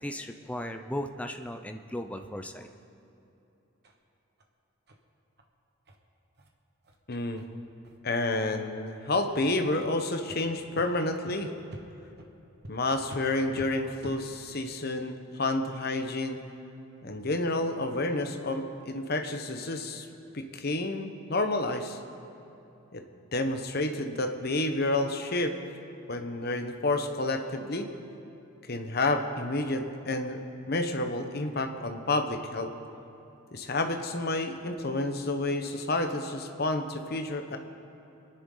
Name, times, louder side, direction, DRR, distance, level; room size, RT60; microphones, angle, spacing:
voice 1, 0.0-2.7, left 1 dB, 5° left, 5 dB, 0.6 m, -36 dB
sound 1, 3.8-4.0 4.4-4.5 4.9-5.0 5.4-5.5 5.9-6.0 6.3-6.5 6.8-7.0 7.4-7.5 7.8-8.0 8.3-8.7 9.2-9.4 9.8-9.9 10.3-10.4 10.7-10.9 11.2-11.3 11.7-11.8 12.2-12.3 12.6-12.7 13.1-13.2 13.5-13.7 14.0-14.2, right 1 dB, 50° right, 1.2 m, -46 dB
voice 2, 7.1-7.4 8.0-11.5 12.7-16.4 17.0-20.1 20.3-22.0 22.9-23.0 23.3-25.5 26.1-27.9 28.7-30.4 30.7-32.7 33.5-37.6, left 2 dB, 50° left, 6 dB, 1.0 m, -30 dB
25.5 x 10.5 x 3.9 m, 3.0 s
head